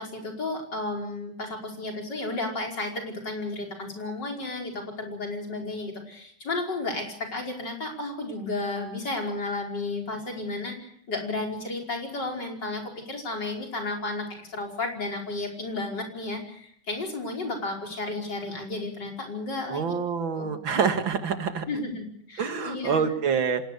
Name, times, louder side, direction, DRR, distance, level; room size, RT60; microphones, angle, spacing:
voice 1, 0.0-19.9 20.4-20.5 21.7-23.0, left 2 dB, 60° left, 2 dB, 5.8 m, -33 dB
voice 2, 19.7-21.7 22.4-23.6, right 6 dB, 85° right, 8 dB, 2.8 m, -26 dB
26.0 x 19.5 x 6.8 m, 0.65 s
omnidirectional pair, 2.1 m